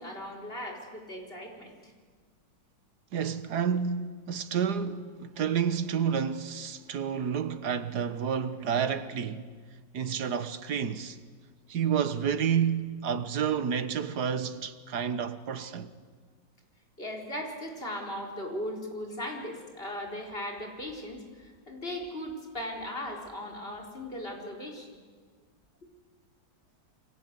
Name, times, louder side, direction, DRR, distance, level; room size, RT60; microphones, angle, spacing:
voice 1, 0.0-1.9 17.0-24.9, left 1 dB, 30° left, 4.5 m, -38 dB
voice 2, 3.1-9.5 9.9-11.2 11.7-15.9, right 7 dB, 65° right, 1.7 m, -30 dB
29.0 x 24.5 x 8.2 m
omnidirectional pair, 2.0 m